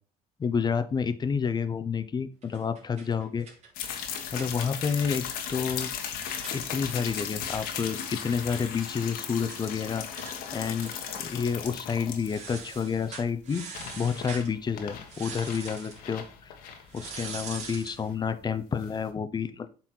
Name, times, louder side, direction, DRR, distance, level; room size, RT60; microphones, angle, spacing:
voice 1, 0.4-3.5 3.8-3.9 4.3-5.9 6.5-10.1 10.5-10.9 11.2-13.7 14.0-16.6 16.9-19.7, left 6 dB, 30° left, 11 dB, 0.8 m, -29 dB
sound 1, 2.4-5.1 5.4-5.5 5.7-8.8 9.1-9.2 9.4-9.7 10.2-10.4 10.8-11.2 11.5-11.8 12.2-14.5 15.1-16.0 16.9-18.0, right 4 dB, 50° right, 3.0 m, -43 dB
sound 2, 3.7-19.1, left 8 dB, 85° left, 1.5 m, -37 dB
8.0 x 4.2 x 4.6 m, 0.36 s
cardioid pair, 110°, 15 cm